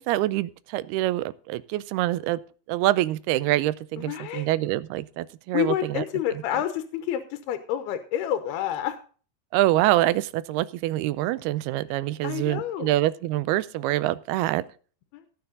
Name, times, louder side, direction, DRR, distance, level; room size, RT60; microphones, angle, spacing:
voice 1, 0.0-2.4 2.7-6.0 9.5-14.7, right 16 dB, 85° right, 17 dB, 2.6 m, -25 dB
voice 2, 4.0-4.5 5.5-9.0 12.2-12.9 15.1-15.2, left 11 dB, 85° left, 9 dB, 2.9 m, -28 dB
17.5 x 7.1 x 3.9 m, 0.40 s
omnidirectional pair, 4.5 m